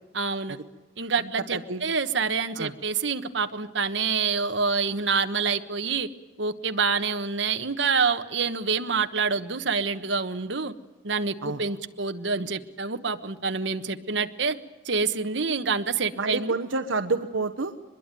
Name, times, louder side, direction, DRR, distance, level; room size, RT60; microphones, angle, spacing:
voice 1, 0.1-0.6 1.0-6.1 6.4-10.7 11.0-14.6 14.8-16.6, right 5 dB, 70° right, 8 dB, 1.4 m, -27 dB
voice 2, 1.5-1.8 2.6-2.7 11.4-11.6 16.2-17.7, right 3 dB, 85° right, 9 dB, 1.1 m, -28 dB
24.0 x 21.5 x 9.2 m, 1.1 s
head